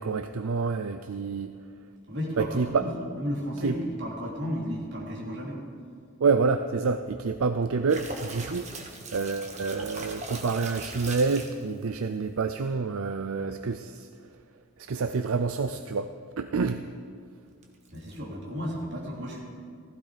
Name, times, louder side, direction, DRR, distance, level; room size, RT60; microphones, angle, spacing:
voice 1, 0.0-1.5 2.4-2.8 3.6-3.7 6.2-8.7 9.1-14.1 14.8-16.8, right 4 dB, 75° right, 9 dB, 0.5 m, -28 dB
voice 2, 2.1-5.6 17.9-19.4, equal, 50° right, -3 dB, 3.4 m, -33 dB
sound 1, 7.9-11.6 17.6-18.2, right 2 dB, 30° right, 1.5 m, -39 dB
15.5 x 15.5 x 5.1 m, 2.1 s
head